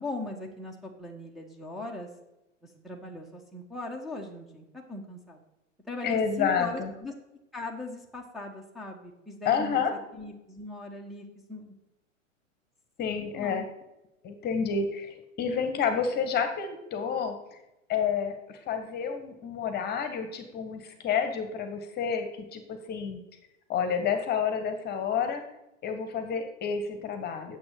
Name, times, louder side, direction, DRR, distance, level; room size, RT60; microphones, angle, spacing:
voice 1, 0.0-2.1 2.6-5.4 5.9-7.1 7.5-9.8 10.1-11.7 13.1-13.6, left 2 dB, ahead, -2 dB, 1.4 m, -39 dB
voice 2, 6.0-6.9 9.4-9.9 13.0-13.7 14.2-17.3 17.9-22.3 22.5-23.2 23.7-25.4 25.8-27.6, left 6 dB, 25° left, 8 dB, 1.6 m, -29 dB
9.5 x 7.5 x 6.7 m, 0.92 s
figure-of-eight pair, 100°, 38 cm